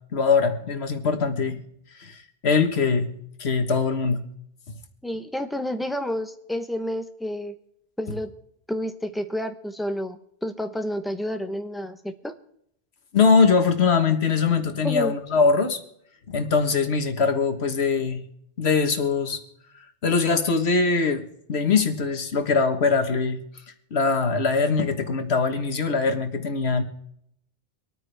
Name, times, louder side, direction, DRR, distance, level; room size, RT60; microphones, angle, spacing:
voice 1, 0.1-1.6 2.0-3.1 3.4-4.2 13.1-15.8 16.3-18.2 18.6-19.4 20.0-21.2 21.5-23.4 23.9-26.8, left 5 dB, 85° left, 7 dB, 1.6 m, -22 dB
voice 2, 5.0-7.5 8.0-8.3 8.7-12.3 14.8-15.1, equal, ahead, 7 dB, 0.8 m, -30 dB
25.5 x 9.2 x 3.4 m, 0.72 s
omnidirectional pair, 1.1 m